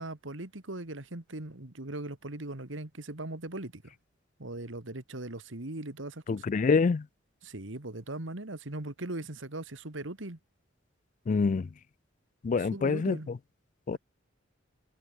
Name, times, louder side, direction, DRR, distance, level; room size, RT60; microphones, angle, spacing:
voice 1, 0.0-3.9 4.4-6.4 7.4-10.4 12.5-13.3 13.9-14.0, right 2 dB, 90° right, 2.3 m, -39 dB
voice 2, 6.3-7.0 11.3-11.7 12.4-13.2 13.9-14.0, left 4 dB, 40° left, 0.4 m, -26 dB
head